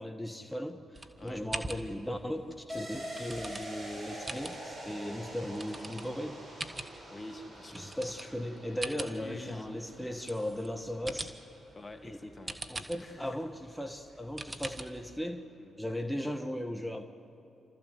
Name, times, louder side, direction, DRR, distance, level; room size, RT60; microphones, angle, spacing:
voice 1, 0.0-6.4 7.7-11.3 12.0-12.2 12.7-15.5 15.8-17.0, equal, 5° left, 5 dB, 1.4 m, -37 dB
sound 1, 0.9-15.2, right 2 dB, 35° right, 1.5 m, -45 dB
sound 2, 2.7-12.1 12.4-12.5, equal, 50° right, 5.3 m, -46 dB
voice 2, 7.1-8.0 9.1-9.8 11.8-12.6 13.0-13.4 15.6-15.7, left 2 dB, 35° left, 7 dB, 1.9 m, -47 dB
29.0 x 14.0 x 7.9 m, 3.0 s
hypercardioid pair, 40°, 0 cm